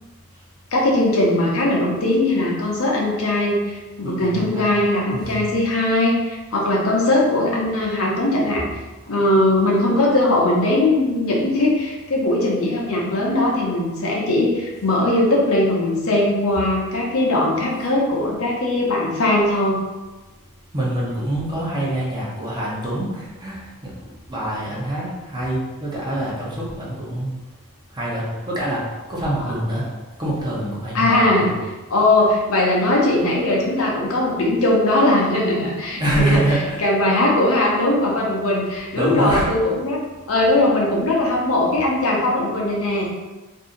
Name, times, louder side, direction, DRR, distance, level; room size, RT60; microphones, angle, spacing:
voice 1, 0.7-8.7 9.1-19.8 30.9-31.5 31.9-36.4 36.8-40.0 40.3-43.1, left 1 dB, 65° left, -2 dB, 0.7 m, -19 dB
voice 2, 4.0-4.7 5.1-5.4 20.7-23.9 24.3-27.3 27.9-28.8 29.1-29.8 30.2-31.5 35.9-36.8 38.9-39.6, right 1 dB, 20° right, -6 dB, 0.8 m, -25 dB
2.7 x 2.6 x 3.8 m, 1.2 s
head